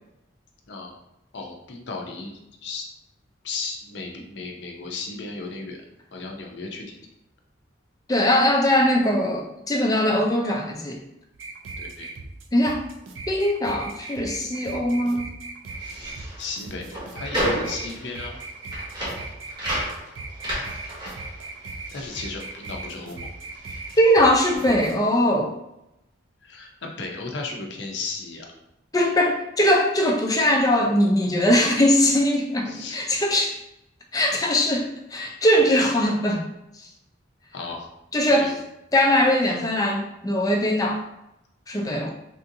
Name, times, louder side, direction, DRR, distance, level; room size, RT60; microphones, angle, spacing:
voice 1, 0.7-1.0 1.3-2.8 3.4-5.8 6.1-7.0 11.8-12.1 16.4-18.4 21.9-23.3 26.4-28.5 32.7-33.0 34.7-34.8 37.5-37.9 38.3-38.5 41.9-42.1, left 3 dB, 65° left, 1 dB, 0.6 m, -35 dB
voice 2, 8.1-11.0 12.5-12.8 13.3-15.3 24.0-25.5 28.9-33.6 34.1-36.4 36.7-36.9 38.1-38.5 38.9-41.0 41.7-42.1, left 1 dB, 20° left, 1 dB, 0.4 m, -21 dB
sound 1, 11.3-24.9, right 3 dB, 80° right, 0.5 m, -38 dB
sound 2, 15.7-23.2 23.4-24.9, equal, 20° right, 0.9 m, -32 dB
3.4 x 2.6 x 2.6 m, 0.86 s
head